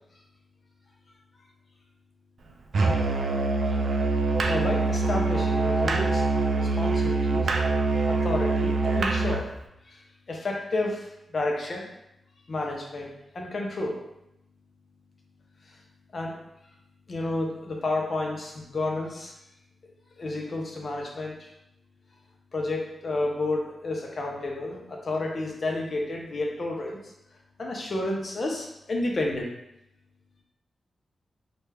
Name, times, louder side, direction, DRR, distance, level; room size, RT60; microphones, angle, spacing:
Musical instrument, 2.7-9.5, right 3 dB, 60° right, 0.3 m, -24 dB
voice 1, 4.4-6.2 6.6-7.5 8.1-9.5 9.9-10.0 10.3-11.9 12.5-14.0 16.1-16.4 17.1-19.3 19.8-19.9 20.2-21.5 22.5-27.0 27.6-29.5, left 2 dB, 45° left, 0 dB, 0.6 m, -31 dB
3.3 x 2.2 x 3.2 m, 0.84 s
wide cardioid pair, 145°, 0 cm